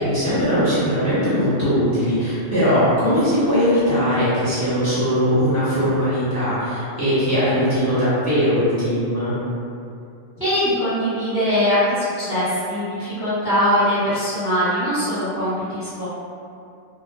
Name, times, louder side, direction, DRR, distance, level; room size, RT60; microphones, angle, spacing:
voice 1, 0.0-9.3, equal, 15° left, -14 dB, 0.9 m, -20 dB
voice 2, 10.4-16.1, equal, 15° right, -15 dB, 0.7 m, -21 dB
2.6 x 2.2 x 2.3 m, 2.5 s
omnidirectional pair, 1.3 m